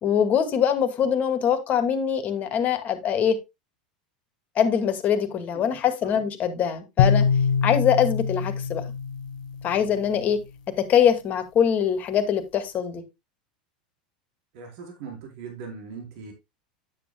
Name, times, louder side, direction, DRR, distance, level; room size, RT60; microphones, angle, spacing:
voice 1, 0.0-3.4 4.6-7.3 7.6-8.8 9.6-10.4 10.8-13.0, left 8 dB, 40° left, 2.2 m, -23 dB
sound 1, 7.0-10.3, left 6 dB, 75° left, 1.2 m, -24 dB
voice 2, 14.5-16.3, right 5 dB, 65° right, 4.2 m, -39 dB
9.7 x 9.0 x 2.2 m
hypercardioid pair, 95°, 4 cm